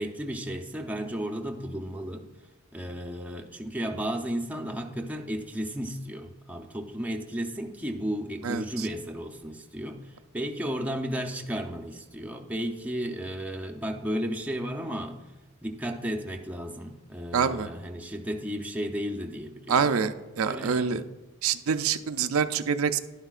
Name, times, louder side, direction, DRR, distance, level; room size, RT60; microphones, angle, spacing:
voice 1, 0.0-2.3 2.7-15.3 15.6-20.0 20.4-21.0, equal, 5° right, 2 dB, 0.7 m, -34 dB
voice 2, 8.4-8.9 17.3-17.7 19.7-21.0 21.4-23.0, right 6 dB, 80° right, 9 dB, 0.5 m, -26 dB
11.0 x 10.0 x 2.4 m, 1.2 s
head